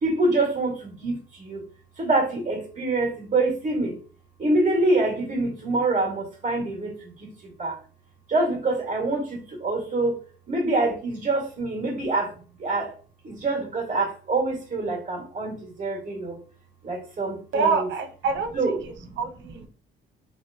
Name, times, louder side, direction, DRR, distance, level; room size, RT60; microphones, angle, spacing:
voice 1, 0.0-1.6 2.0-3.9 4.4-7.7 8.3-10.2 10.5-12.3 12.6-12.9 13.2-16.4 16.8-17.9 18.5-19.1 19.5-19.6, right 2 dB, 40° right, 0 dB, 1.5 m, -26 dB
voice 2, 17.5-18.8 19.2-19.7, right 4 dB, 70° right, 6 dB, 0.6 m, -26 dB
2.9 x 2.9 x 2.7 m, 0.40 s
cardioid pair, 90°, 20 cm